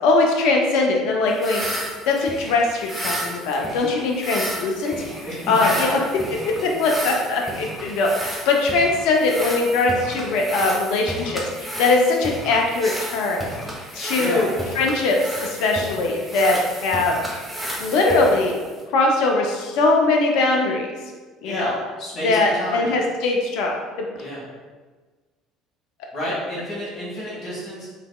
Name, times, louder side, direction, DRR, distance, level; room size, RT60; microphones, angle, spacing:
voice 1, 0.0-1.6 2.1-4.9 5.5-6.0 6.4-11.4 11.8-13.4 13.9-14.5 14.8-17.2 17.8-18.6 18.9-20.9 21.4-21.7 22.2-24.1, left 3 dB, 60° left, 1 dB, 0.4 m, -21 dB
sound 1, 1.3-18.9, equal, 10° right, 0.7 m, -32 dB
voice 2, 5.2-6.0 14.1-14.5 21.4-22.9 24.2-24.4 26.1-27.9, equal, 45° left, -6 dB, 1.3 m, -30 dB
3.2 x 3.1 x 2.2 m, 1.4 s
figure-of-eight pair, 60°, 0 cm